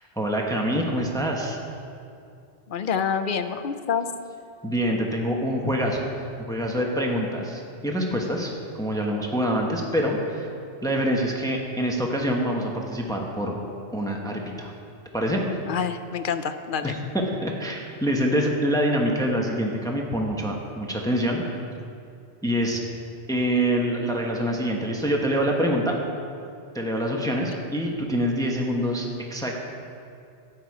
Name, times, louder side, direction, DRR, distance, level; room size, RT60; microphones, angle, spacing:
voice 1, 0.2-1.6 4.6-6.0 6.5-8.5 8.8-10.5 10.8-13.5 13.9-14.7 15.1-15.5 16.8-17.0 17.4-21.4 22.4-22.8 23.3-26.0 26.7-29.6, equal, 5° left, 0 dB, 1.0 m, -25 dB
voice 2, 2.7-4.0 15.7-16.9, left 7 dB, 55° left, 9 dB, 0.7 m, -27 dB
12.0 x 8.9 x 4.9 m, 2.5 s
omnidirectional pair, 1.1 m